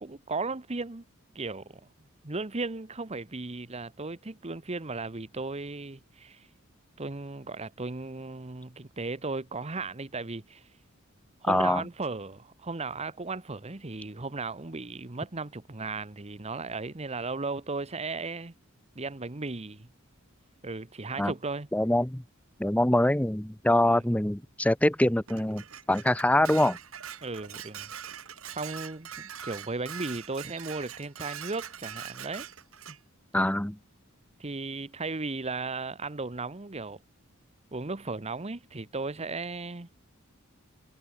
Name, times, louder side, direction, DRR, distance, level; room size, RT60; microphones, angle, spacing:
voice 1, 0.0-1.0 1.3-1.8 2.2-6.5 7.0-10.6 11.4-18.5 18.9-19.9 20.6-21.7 23.8-24.0 27.2-27.9 28.5-32.5 32.9-33.0 34.4-37.0 37.7-39.9, right 3 dB, 30° right, 1.1 m, -36 dB
voice 2, 11.5-11.8 21.2-21.3 21.7-22.2 22.6-25.6 25.9-26.8 33.3-33.8, left 1 dB, 5° left, 0.8 m, -24 dB
Dishes pots and pans, 25.3-33.0, right 8 dB, 80° right, 3.2 m, -42 dB
head